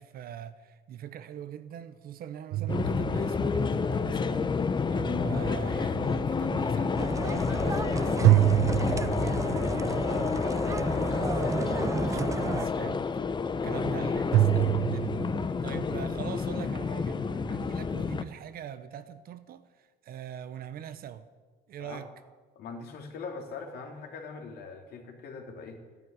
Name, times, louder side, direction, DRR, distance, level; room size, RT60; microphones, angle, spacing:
voice 1, 0.0-13.2 13.5-15.2 15.6-21.3 21.7-22.1, right 10 dB, 60° right, 1.1 m, -42 dB
sound 1, 2.5-3.7 8.2-9.8 14.3-15.5, right 14 dB, 80° right, 0.5 m, -25 dB
sound 2, 2.7-18.2, left 5 dB, 25° left, 0.8 m, -29 dB
sound 3, 7.0-12.7, right 4 dB, 20° right, 0.5 m, -34 dB
voice 2, 22.5-25.8, left 4 dB, 70° left, 3.1 m, -42 dB
14.0 x 10.5 x 9.7 m
cardioid pair, 110°, 17 cm